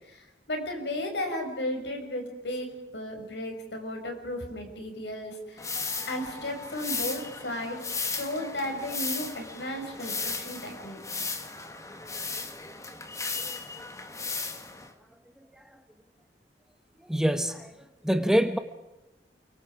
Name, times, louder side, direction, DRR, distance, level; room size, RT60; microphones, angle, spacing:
voice 1, 0.0-5.8 6.1-11.2, left 1 dB, 75° left, 3 dB, 6.5 m, -35 dB
sound 1, 5.6-14.9, left 4 dB, 20° left, 1.7 m, -36 dB
voice 2, 17.1-17.7 18.0-18.6, equal, 5° right, 8 dB, 1.1 m, -24 dB
29.0 x 24.5 x 5.0 m, 0.99 s
head